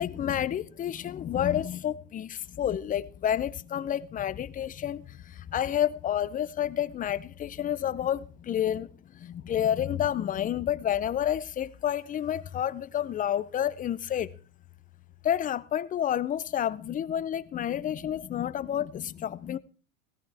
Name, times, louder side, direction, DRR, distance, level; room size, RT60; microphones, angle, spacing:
voice 1, 0.0-5.0 5.5-8.9 9.2-14.3 15.2-19.6, left 10 dB, 20° left, 0.5 m, -29 dB
17.0 x 14.0 x 3.4 m
supercardioid pair, 120°, 41 cm